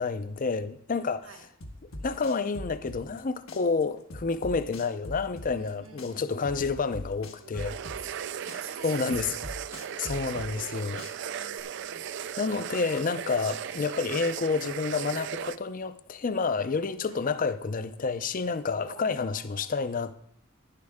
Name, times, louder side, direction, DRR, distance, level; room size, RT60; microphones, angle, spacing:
voice 1, 0.0-1.3 2.0-7.8 8.8-9.3 10.0-11.0 12.4-20.1, left 4 dB, 40° left, 0.5 m, -29 dB
sound 1, 1.6-3.2 3.5-5.7 6.0-8.2 8.5-10.7 11.0-11.6, left 1 dB, 80° left, 1.3 m, -41 dB
voice 2, 5.5-6.7 7.4-9.3 9.8-10.9 11.2-12.0 13.5-13.8 17.1-17.2 18.8-20.1, right 6 dB, 80° right, 1.2 m, -49 dB
sound 2, 7.6-15.6, right 8 dB, 60° right, 0.4 m, -37 dB
11.5 x 10.0 x 3.5 m
head